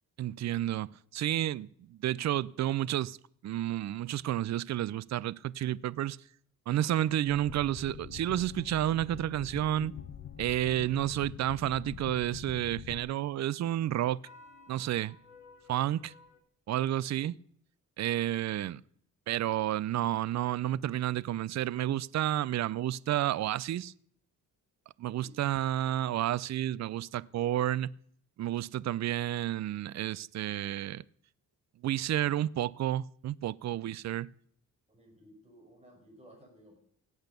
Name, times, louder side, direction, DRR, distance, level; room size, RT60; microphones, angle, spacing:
voice 1, 0.2-3.2 3.4-6.2 6.7-9.9 10.4-14.2 14.7-15.2 15.7-16.1 16.7-17.3 18.0-18.8 19.3-23.9 25.0-27.9 28.4-31.0 31.8-34.3, right 12 dB, 50° right, 0.5 m, -31 dB
sound 1, 7.3-13.0, left 9 dB, 65° left, 1.0 m, -45 dB
sound 2, 8.1-16.4, left 2 dB, 35° left, 7.2 m, -57 dB
voice 2, 25.1-25.5 34.9-36.7, equal, 20° right, 5.5 m, -57 dB
17.5 x 8.1 x 6.8 m
cardioid pair, 115°, 35 cm